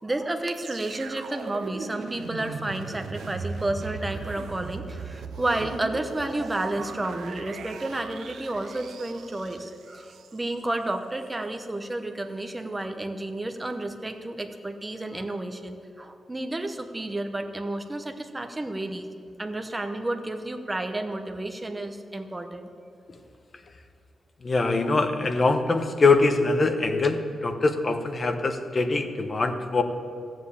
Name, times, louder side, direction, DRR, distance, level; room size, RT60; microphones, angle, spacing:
voice 1, 0.0-19.1 19.4-22.7, right 2 dB, 15° right, 6 dB, 0.9 m, -31 dB
sound 1, 0.5-10.6 11.2-11.3, right 5 dB, 85° right, 0.8 m, -38 dB
voice 2, 24.4-29.8, left 3 dB, 30° left, 7 dB, 0.9 m, -23 dB
13.5 x 7.7 x 8.3 m, 2.5 s
wide cardioid pair, 170°, 0 cm